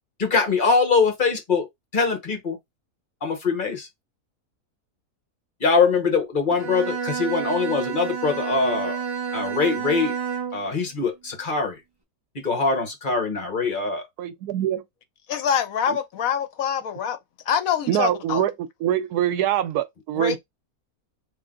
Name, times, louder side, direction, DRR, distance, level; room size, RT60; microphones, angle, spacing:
voice 1, 0.2-1.7 1.9-2.6 3.2-3.9 5.6-9.0 9.3-10.1 10.5-11.8 12.3-14.0, left 4 dB, 35° left, 1.1 m, -23 dB
Bowed string instrument, 6.5-10.7, right 6 dB, 20° right, 0.8 m, -30 dB
voice 2, 14.2-14.8 17.9-18.5 18.8-20.4, right 11 dB, 80° right, 1.1 m, -24 dB
voice 3, 15.3-17.2 17.5-18.4 20.2-20.4, left 8 dB, 70° left, 1.0 m, -25 dB
3.3 x 2.7 x 3.7 m
omnidirectional pair, 1.6 m